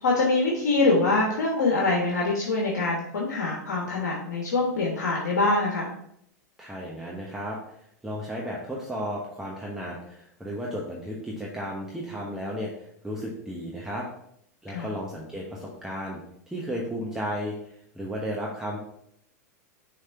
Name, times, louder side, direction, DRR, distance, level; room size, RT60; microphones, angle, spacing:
voice 1, 0.0-5.9 14.7-14.9, left 3 dB, 80° left, -2 dB, 1.3 m, -24 dB
voice 2, 6.6-7.8 8.0-14.1 14.6-16.2 16.5-18.8, equal, 5° right, -4 dB, 1.1 m, -34 dB
6.4 x 3.5 x 4.5 m, 0.72 s
hypercardioid pair, 100°, 9 cm